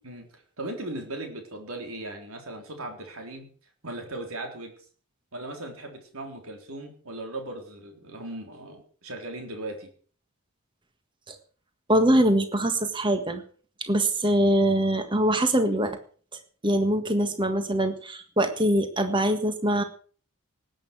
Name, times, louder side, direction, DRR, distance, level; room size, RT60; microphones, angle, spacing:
voice 1, 0.0-3.5 3.8-4.7 5.3-9.9, right 2 dB, 75° right, 4 dB, 3.8 m, -38 dB
voice 2, 11.9-13.4 13.8-16.0 16.6-19.8, right 1 dB, 20° right, 8 dB, 1.6 m, -23 dB
18.5 x 9.1 x 6.1 m, 0.43 s
head